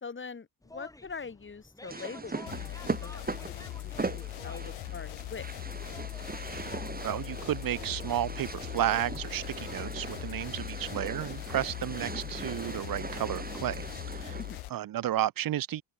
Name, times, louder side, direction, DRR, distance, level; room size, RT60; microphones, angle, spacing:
voice 1, 0.0-5.5 14.4-14.6, left 5 dB, 25° left, 3.2 m, -43 dB
sound 1, 0.6-14.3, left 1 dB, 5° left, 2.4 m, -51 dB
sound 2, 1.9-14.7, right 3 dB, 20° right, 3.5 m, -40 dB
sound 3, 2.5-14.7, left 19 dB, 75° left, 1.0 m, -40 dB
voice 2, 6.4-6.7 7.0-13.8 14.1-14.4 14.7-15.8, right 12 dB, 45° right, 0.9 m, -32 dB
open air
cardioid pair, 115°, 48 cm